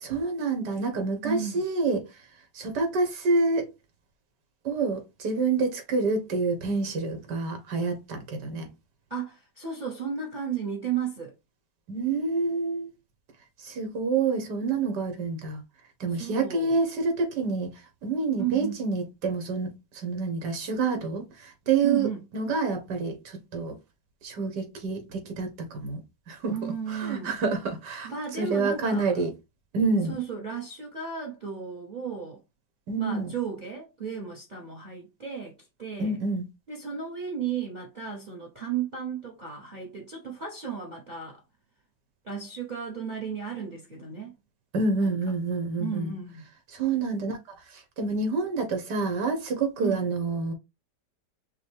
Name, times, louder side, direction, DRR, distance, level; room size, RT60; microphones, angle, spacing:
voice 1, 0.0-2.1 2.5-3.7 4.7-8.7 11.9-12.9 13.6-15.6 16.0-17.7 18.0-19.7 20.0-22.1 22.3-23.8 24.2-26.0 26.3-26.6 26.9-28.1 28.4-29.3 29.7-30.2 32.9-33.3 36.0-36.5 44.7-46.1 46.7-47.4 48.0-50.5, right 4 dB, 75° right, 1.9 m, -27 dB
voice 2, 1.2-1.6 9.1-11.3 16.1-16.8 18.4-18.7 21.8-22.2 26.5-27.3 28.0-29.1 30.1-32.4 33.0-36.2 36.7-41.4 42.2-44.4 45.0-45.2 45.8-46.4 49.8-50.1, right 7 dB, 30° right, 0.9 m, -34 dB
5.9 x 2.3 x 3.4 m
omnidirectional pair, 1.9 m